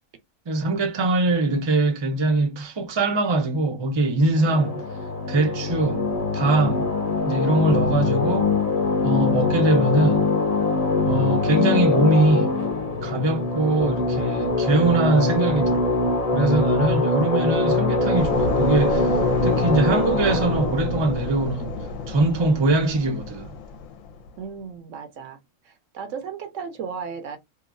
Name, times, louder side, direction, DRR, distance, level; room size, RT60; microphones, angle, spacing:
voice 1, 0.5-4.8 5.3-6.9 7.3-8.5 9.0-10.3 11.1-12.6 13.0-15.9 16.3-19.1 19.4-23.5, right 2 dB, 35° right, 0.4 m, -22 dB
sound 1, 4.4-22.5, left 3 dB, 40° left, 0.5 m, -23 dB
sound 2, 18.2-24.5, left 3 dB, 70° left, 0.9 m, -31 dB
voice 2, 24.4-25.4 25.6-27.4, right 6 dB, 65° right, 0.9 m, -35 dB
2.9 x 2.3 x 2.5 m
omnidirectional pair, 1.5 m